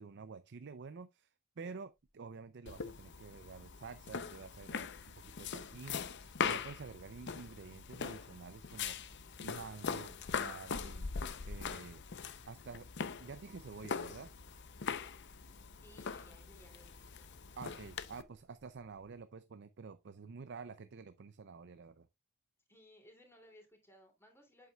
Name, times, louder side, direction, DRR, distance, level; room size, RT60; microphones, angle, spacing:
voice 1, 0.0-9.1 9.4-11.1 11.5-12.0 12.5-12.9 13.2-14.3 17.6-22.1, right 5 dB, 55° right, 0.5 m, -49 dB
sound 1, 1.9-19.2, equal, 20° right, 1.9 m, -69 dB
sound 2, 2.7-18.2, left 6 dB, 55° left, 0.7 m, -42 dB
voice 2, 15.8-17.3 22.7-24.7, equal, 10° left, 2.8 m, -61 dB
8.4 x 7.6 x 2.3 m
head